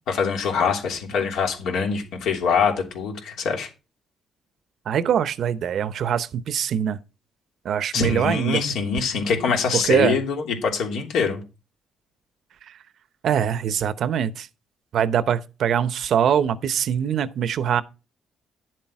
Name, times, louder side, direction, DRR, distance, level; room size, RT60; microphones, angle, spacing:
voice 1, 0.1-3.7 7.9-11.4, left 5 dB, 85° left, 3.0 m, -24 dB
voice 2, 4.9-7.0 7.6-8.6 9.7-10.2 13.2-14.5 14.9-17.8, right 8 dB, 65° right, 0.8 m, -23 dB
10.5 x 7.6 x 4.7 m
cardioid pair, 90°, 0 cm